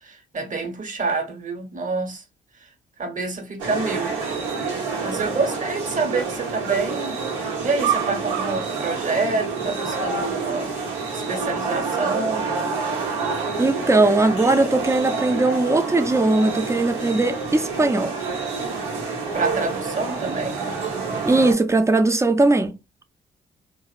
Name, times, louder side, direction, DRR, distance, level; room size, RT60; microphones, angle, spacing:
voice 1, 0.0-2.2 3.0-4.1 4.8-7.2 7.6-10.8 11.1-12.5 19.3-20.5, right 3 dB, 40° right, 1.0 m, -27 dB
sound 1, 3.6-21.5, right 4 dB, 80° right, 0.7 m, -27 dB
voice 2, 13.6-18.1 21.3-22.7, right 2 dB, 15° right, 0.5 m, -19 dB
2.7 x 2.0 x 2.4 m
hypercardioid pair, 45°, 20 cm